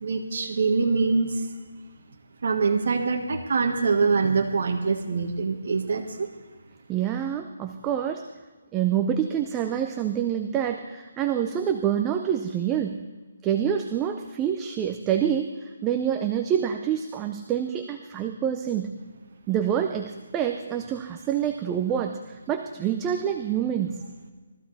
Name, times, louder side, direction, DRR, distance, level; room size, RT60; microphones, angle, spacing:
voice 1, 0.0-1.3 2.4-6.0, right 4 dB, 50° right, 4 dB, 1.4 m, -24 dB
voice 2, 6.9-8.3 8.7-13.0 13.4-18.9 19.5-24.0, right 9 dB, 10° right, 6 dB, 0.4 m, -27 dB
21.5 x 14.0 x 4.0 m, 1.4 s
hypercardioid pair, 175°, 0 cm